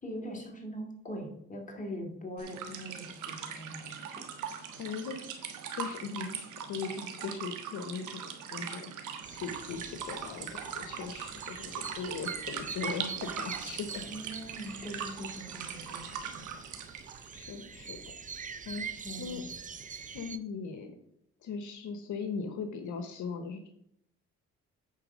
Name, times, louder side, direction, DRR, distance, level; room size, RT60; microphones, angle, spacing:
voice 1, 0.0-4.2 14.1-16.4 18.9-19.5, equal, 25° left, 1 dB, 2.7 m, -42 dB
sound 1, 2.4-17.4, right 7 dB, 90° right, 1.3 m, -41 dB
voice 2, 4.8-8.9 9.3-14.0 17.3-18.1 18.7-18.9 19.2-19.4 20.1-21.0 21.4-23.7, left 5 dB, 75° left, 6 dB, 1.0 m, -39 dB
sound 2, 9.2-20.4, right 6 dB, 25° right, 0.6 m, -44 dB
8.9 x 4.2 x 6.2 m, 0.74 s
cardioid pair, 90°, 30 cm